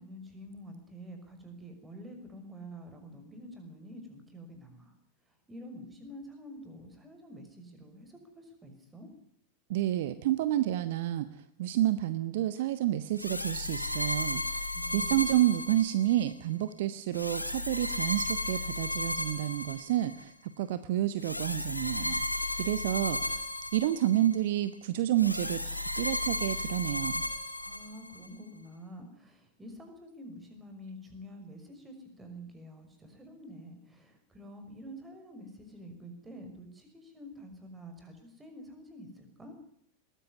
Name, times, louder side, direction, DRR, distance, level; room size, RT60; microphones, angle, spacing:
voice 1, 0.0-4.9 5.5-9.1 14.7-15.4 27.6-39.6, equal, 15° right, 6 dB, 5.8 m, -48 dB
voice 2, 9.7-11.3 11.6-14.4 14.9-22.3 22.6-23.5 23.7-27.2, right 13 dB, 55° right, 13 dB, 1.1 m, -29 dB
sound 1, 13.2-16.3 17.1-20.2 21.2-24.4 25.2-28.3, left 1 dB, 90° left, 1.9 m, -34 dB
21.0 x 15.0 x 9.8 m, 0.69 s
figure-of-eight pair, 90°, 0 cm